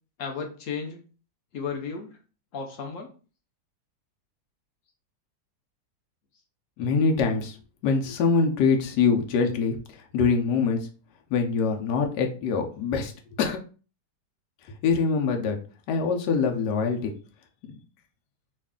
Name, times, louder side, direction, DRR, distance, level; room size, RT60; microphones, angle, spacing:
voice 1, 0.2-1.0 1.5-2.2 2.5-3.1, left 5 dB, 65° left, 3 dB, 0.8 m, -34 dB
voice 2, 6.8-7.6 7.8-10.9 11.3-13.6 14.8-15.6 15.9-17.1, left 5 dB, 85° left, 3 dB, 1.2 m, -24 dB
3.2 x 2.4 x 3.5 m, 0.36 s
omnidirectional pair, 1.7 m